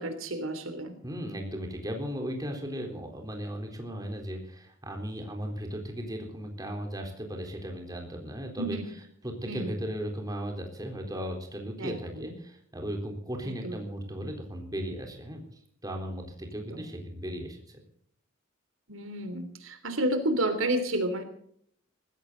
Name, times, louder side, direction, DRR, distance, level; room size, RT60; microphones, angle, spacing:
voice 1, 0.0-0.9 8.6-8.8 9.5-9.7 11.8-12.3 13.4-13.7 16.7-16.8 18.9-21.2, right 1 dB, 90° right, 8 dB, 3.2 m, -31 dB
voice 2, 1.0-17.8, equal, 20° right, 3 dB, 3.9 m, -36 dB
19.5 x 15.5 x 4.0 m, 0.64 s
head